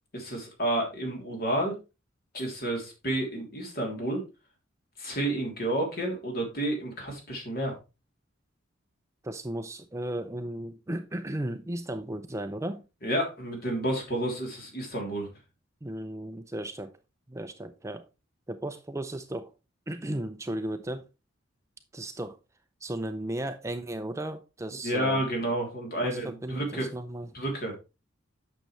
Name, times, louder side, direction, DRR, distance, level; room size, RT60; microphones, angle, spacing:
voice 1, 0.1-1.7 2.3-4.2 5.0-7.8 13.0-15.3 24.8-26.9 27.3-27.8, right 1 dB, 50° left, 3.3 m, -30 dB
voice 2, 9.2-12.8 15.8-16.9 17.3-18.1 18.5-19.5 19.9-21.0 21.9-22.4 22.8-25.2 26.0-27.3, right 1 dB, 15° right, 0.5 m, -35 dB
8.9 x 6.6 x 3.2 m
head